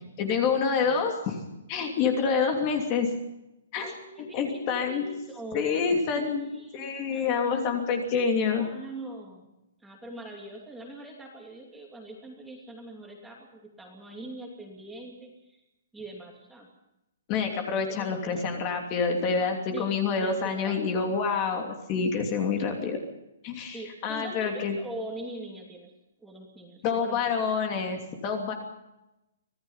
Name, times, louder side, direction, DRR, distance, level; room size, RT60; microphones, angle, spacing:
voice 1, 0.2-1.4 1.7-3.1 3.7-4.0 4.3-5.0 5.5-8.7 17.3-23.0 23.4-23.8 24.0-24.8 26.8-28.5, left 5 dB, 20° left, 4 dB, 2.9 m, -27 dB
voice 2, 0.8-1.1 3.8-7.4 8.4-9.4 9.8-15.6 15.9-16.7 17.6-18.4 19.7-19.9 20.2-21.0 23.7-25.9 26.2-27.2, right 1 dB, 5° right, 0 dB, 2.8 m, -42 dB
25.5 x 18.5 x 5.7 m, 0.91 s
hypercardioid pair, 180°, 0 cm